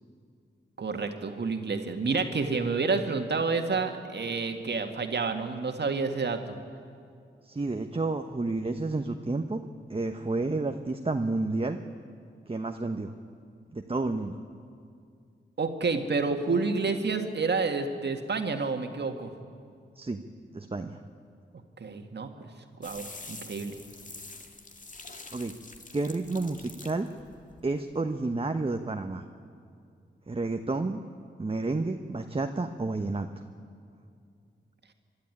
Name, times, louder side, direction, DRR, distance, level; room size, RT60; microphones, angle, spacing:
voice 1, 0.8-6.6 15.6-19.3 21.8-22.5 22.8-23.8, right 4 dB, 60° right, 5 dB, 1.9 m, -29 dB
voice 2, 7.4-9.6 9.9-11.8 12.5-13.1 13.7-14.4 20.0-20.2 20.5-21.0 25.3-25.5 25.9-27.1 27.6-29.2 30.3-31.0 31.4-33.3, right 3 dB, 30° right, 5 dB, 1.1 m, -30 dB
sound 1, 22.8-28.0, left 3 dB, 40° left, 2.0 m, -46 dB
24.0 x 12.0 x 9.7 m, 2.3 s
supercardioid pair, 45°, 20 cm